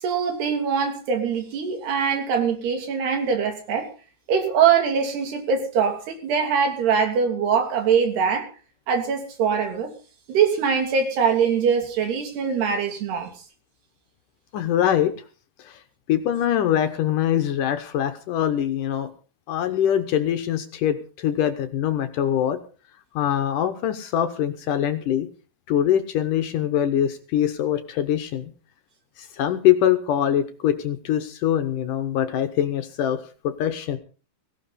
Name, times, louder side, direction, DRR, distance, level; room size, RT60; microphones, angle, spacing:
voice 1, 0.0-3.9 4.3-8.5 8.9-9.9 10.3-13.3, right 6 dB, 85° right, 5.0 m, -22 dB
voice 2, 14.5-15.1 15.6-15.8 16.1-19.1 19.5-22.6 23.2-25.3 25.7-28.5 29.2-34.0, left 10 dB, 70° left, 2.2 m, -23 dB
17.5 x 17.0 x 4.2 m
omnidirectional pair, 4.5 m